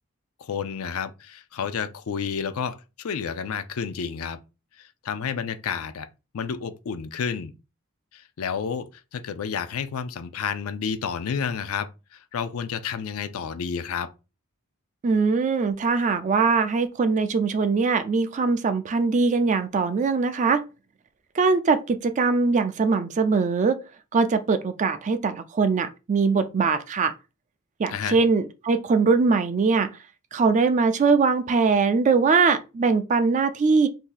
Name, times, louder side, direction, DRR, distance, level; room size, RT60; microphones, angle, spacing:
voice 1, 0.4-4.4 4.8-6.1 6.3-7.5 8.1-14.1 27.9-28.2, left 6 dB, 75° left, 0.4 m, -30 dB
voice 2, 15.0-20.6 21.3-23.8 24.1-27.1 27.8-29.9 30.3-33.9, right 4 dB, 35° right, 0.3 m, -21 dB
2.7 x 2.6 x 3.9 m
head